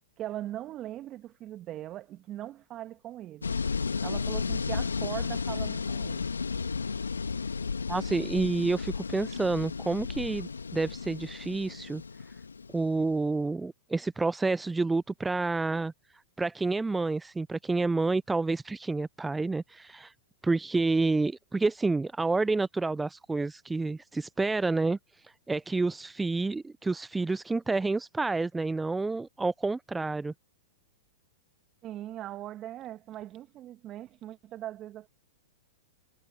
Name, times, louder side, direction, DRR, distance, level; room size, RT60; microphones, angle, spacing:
voice 1, 0.2-3.6 4.0-6.3 31.8-35.1, right 13 dB, 35° right, 1.9 m, -40 dB
sound 1, 3.4-13.1, left 5 dB, 90° left, 1.5 m, -33 dB
voice 2, 7.9-12.0 12.7-15.9 16.4-20.1 20.4-30.3, right 3 dB, 10° right, 0.3 m, -29 dB
hypercardioid pair, 110°, 0 cm